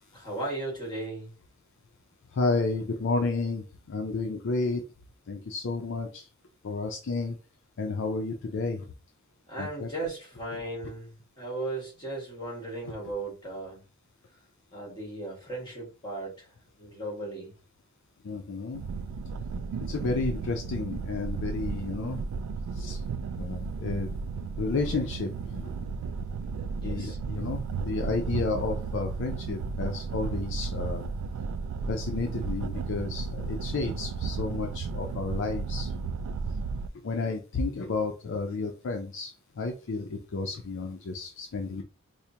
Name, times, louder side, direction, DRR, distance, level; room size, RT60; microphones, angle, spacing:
voice 1, 0.1-1.3 9.5-11.1 11.4-13.8 14.7-16.5 16.8-17.5 26.8-27.2, right 2 dB, 20° left, -2 dB, 1.7 m, -36 dB
voice 2, 2.3-4.8 5.3-6.3 6.6-7.4 7.8-8.9 9.6-9.9 18.2-18.8 19.9-22.2 22.7-23.0 23.4-24.1 24.6-25.6 26.8-31.0 31.9-35.9 37.0-41.8, left 3 dB, 55° left, 4 dB, 0.5 m, -31 dB
sound 1, 18.7-36.9, right 4 dB, 80° right, 0.3 m, -34 dB
4.7 x 2.1 x 2.8 m, 0.35 s
head